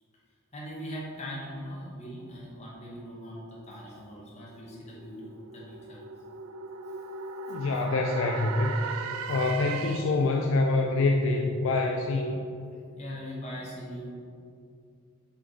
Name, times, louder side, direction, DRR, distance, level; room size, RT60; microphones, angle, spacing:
voice 1, 0.5-6.0 9.5-9.6 13.0-14.1, equal, 30° left, -5 dB, 1.2 m, -40 dB
sound 1, 4.2-10.3, right 4 dB, 85° right, 0.4 m, -38 dB
voice 2, 7.5-8.8 9.3-12.4, left 3 dB, 65° left, 2 dB, 0.4 m, -26 dB
6.5 x 3.6 x 4.0 m, 2.4 s
head